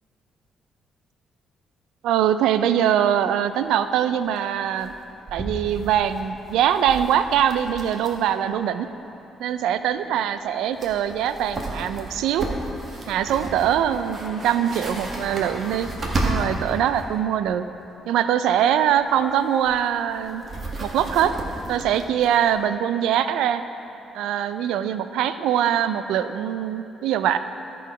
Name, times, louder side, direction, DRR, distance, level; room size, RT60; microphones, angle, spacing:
voice 1, 2.0-4.9 5.3-8.9 9.4-12.5 13.1-15.9 16.2-17.7 18.1-20.5 20.8-21.3 21.7-23.6 24.1-27.4, right 10 dB, 85° right, 11 dB, 0.3 m, -22 dB
sound 1, 3.5-3.6 3.8-3.9 4.2-4.4 4.8-8.3 8.6-8.7 10.4-10.5 10.7-17.1 18.9-22.6, right 2 dB, 40° right, 1.4 m, -33 dB
13.0 x 4.6 x 4.9 m, 2.8 s
cardioid pair, 90°, 0 cm